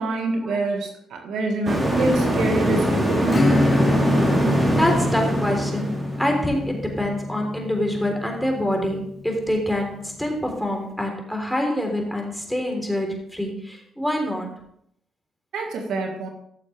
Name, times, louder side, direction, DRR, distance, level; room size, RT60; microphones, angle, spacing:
voice 1, 0.0-3.6 15.5-16.3, right 2 dB, 75° right, 3 dB, 1.8 m, -26 dB
sound 1, 1.6-6.5, equal, 15° right, 3.6 m, -23 dB
Acoustic guitar / Strum, 3.3-9.5, left 2 dB, 35° left, 2.2 m, -26 dB
voice 2, 4.8-14.5, left 1 dB, ahead, 2 dB, 3.7 m, -26 dB
15.0 x 6.9 x 3.4 m, 0.70 s
supercardioid pair, 65°, 0 cm